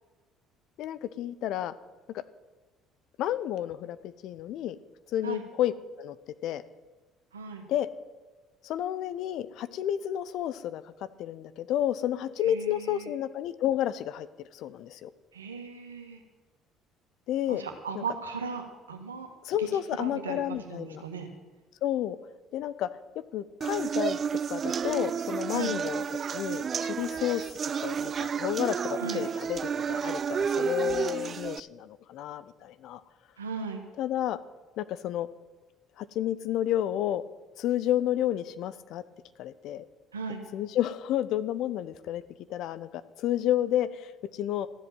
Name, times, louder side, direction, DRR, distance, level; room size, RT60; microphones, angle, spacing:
voice 1, 0.8-1.7 2.1-2.2 3.2-4.8 5.1-5.7 6.0-6.2 6.4-6.6 7.7-7.9 8.6-10.9 11.2-14.3 14.5-15.1 17.3-17.6 17.9-18.0 19.4-21.0 21.8-22.2 22.5-22.9 23.3-24.2 24.5-26.1 26.3-27.5 27.8-33.0 34.0-34.4 34.8-35.3 36.0-37.2 37.6-39.0 39.4-39.8 40.5-42.2 42.5-44.7, left 11 dB, 60° left, 15 dB, 0.7 m, -31 dB
voice 2, 7.3-7.6 12.4-13.1 15.3-16.2 17.5-19.3 19.6-19.7 20.0-21.3 25.5-25.7 29.0-29.2 33.4-33.8 40.1-40.4, right 5 dB, 85° right, 4 dB, 1.6 m, -37 dB
sound 1, 23.6-31.6, right 7 dB, 40° right, 0.4 m, -31 dB
14.0 x 8.0 x 9.0 m, 1.3 s
hypercardioid pair, 55°, 0 cm